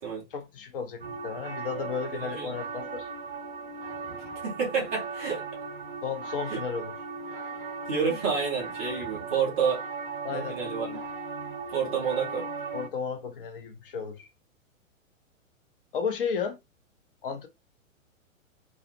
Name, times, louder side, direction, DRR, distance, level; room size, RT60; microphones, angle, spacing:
voice 1, 0.3-3.1 6.0-6.9 10.2-10.6 12.7-14.3 15.9-16.6 17.2-17.5, left 6 dB, 40° left, 0.7 m, -33 dB
sound 1, 1.0-12.9, right 4 dB, 45° right, 0.7 m, -38 dB
voice 2, 2.2-2.5 4.4-5.4 6.5-6.6 7.9-9.8 10.3-10.9 11.7-12.5, right 6 dB, 10° right, 0.4 m, -29 dB
2.3 x 2.0 x 2.6 m
figure-of-eight pair, 110°, 40 cm